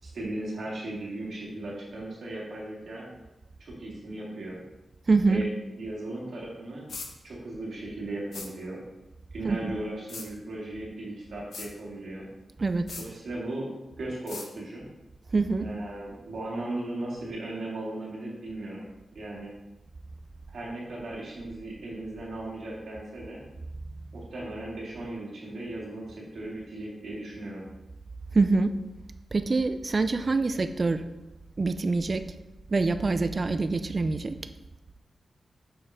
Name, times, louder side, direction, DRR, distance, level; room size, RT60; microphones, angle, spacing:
voice 1, 0.0-3.1 3.6-4.6 5.3-5.5 5.7-6.8 7.2-8.8 9.3-12.3 13.0-13.7 14.0-14.8 15.6-18.8 19.1-19.5 20.5-23.4 24.1-27.6, right 1 dB, 70° right, -4 dB, 2.3 m, -37 dB
voice 2, 5.1-5.4 9.4-9.6 12.6-12.9 15.3-15.7 28.3-28.7 29.3-31.0 31.6-32.2 32.7-34.4, right 3 dB, 40° right, 9 dB, 0.4 m, -25 dB
sound 1, 6.9-7.1 8.3-8.5 10.1-10.3 11.5-11.7 12.9-13.1 14.3-14.5, left 4 dB, 75° left, 1.0 m, -39 dB
6.7 x 5.4 x 3.6 m, 1.0 s
cardioid pair, 75°, 0 cm